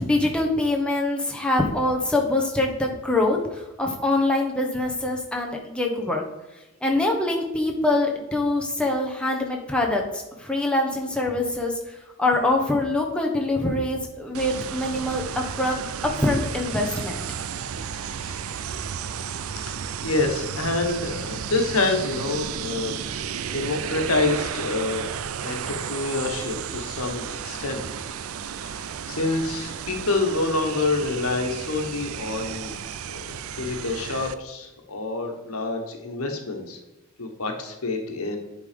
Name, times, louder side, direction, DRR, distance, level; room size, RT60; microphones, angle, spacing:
voice 1, 0.0-6.2 6.8-17.2, left 2 dB, 5° left, 0 dB, 1.0 m, -24 dB
sound 1, 14.3-34.3, right 7 dB, 80° right, 0.5 m, -33 dB
voice 2, 19.7-23.0 23.5-25.1 25.4-27.8 28.5-32.7 33.1-36.8 37.2-38.4, left 3 dB, 80° left, 4 dB, 1.3 m, -27 dB
10.0 x 3.9 x 5.1 m, 1.0 s
head